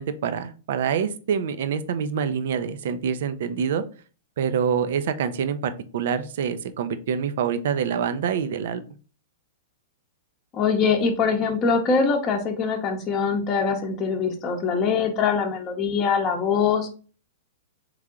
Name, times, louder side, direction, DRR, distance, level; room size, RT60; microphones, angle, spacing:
voice 1, 0.0-3.8 4.4-8.8, right 7 dB, 65° right, 11 dB, 0.5 m, -26 dB
voice 2, 10.5-16.9, left 5 dB, 30° left, 2 dB, 0.7 m, -23 dB
3.6 x 3.2 x 3.6 m, 0.38 s
hypercardioid pair, 115°, 0 cm